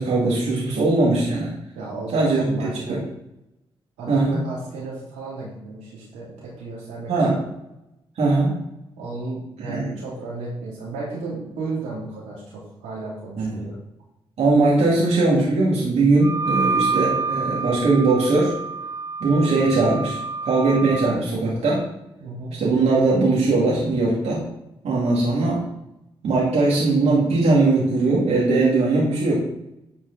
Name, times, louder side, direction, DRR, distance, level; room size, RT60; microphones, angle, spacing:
voice 1, 0.0-1.5 2.1-3.0 4.1-4.4 7.1-7.4 8.2-8.5 9.6-9.8 13.4-13.6 14.4-18.5 19.2-21.9 22.6-24.5 24.8-25.6 26.2-29.3, right 3 dB, 70° right, -5 dB, 2.5 m, -20 dB
voice 2, 1.7-3.0 4.0-7.3 8.9-13.7 22.2-22.6, right 3 dB, 85° right, -7 dB, 3.2 m, -34 dB
Wind instrument woodwind instrument, 16.2-21.2, right 4 dB, 30° right, 0.5 m, -27 dB
10.0 x 4.8 x 4.1 m, 0.85 s
hypercardioid pair, 40°, 11 cm